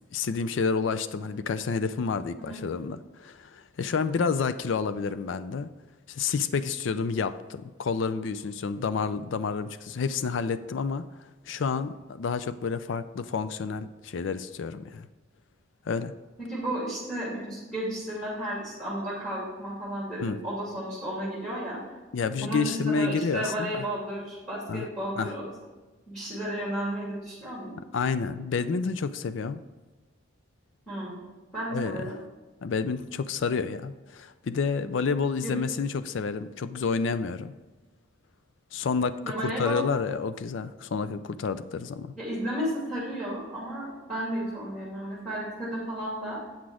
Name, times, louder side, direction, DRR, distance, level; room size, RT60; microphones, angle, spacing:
voice 1, 0.1-5.7 6.1-15.1 15.9-16.1 20.2-20.4 22.1-23.8 24.7-24.9 25.2-25.3 27.9-29.6 31.7-32.1 32.6-37.5 38.7-42.1, left 5 dB, 65° left, 12 dB, 0.4 m, -29 dB
voice 2, 16.5-21.8 22.4-25.4 26.1-27.7 30.9-31.1 31.5-32.1 35.4-35.5 39.2-39.8 42.1-46.5, right 1 dB, 5° left, -7 dB, 2.7 m, -33 dB
8.7 x 6.1 x 4.8 m, 1.2 s
head